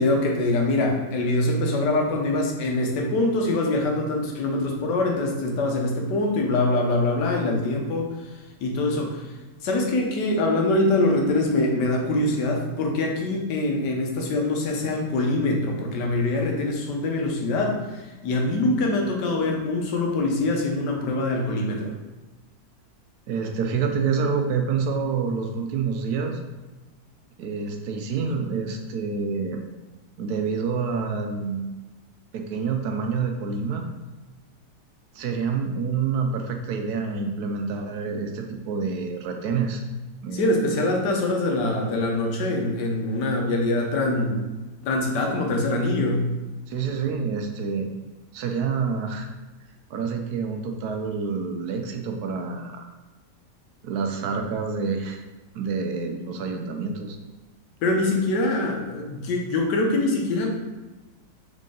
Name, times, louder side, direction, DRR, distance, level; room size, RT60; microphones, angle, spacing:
voice 1, 0.0-8.1 8.6-9.3 9.6-21.9 40.3-44.4 44.8-46.3 57.8-60.5, left 2 dB, 85° left, 1 dB, 1.4 m, -24 dB
voice 2, 23.3-26.4 27.4-29.6 30.2-31.7 32.3-33.9 35.1-39.8 40.2-40.7 46.7-47.9 48.3-49.3 49.9-52.8 53.8-55.2 55.5-57.2, right 5 dB, 70° right, 4 dB, 1.0 m, -27 dB
3.9 x 3.7 x 3.7 m, 1.2 s
omnidirectional pair, 1.8 m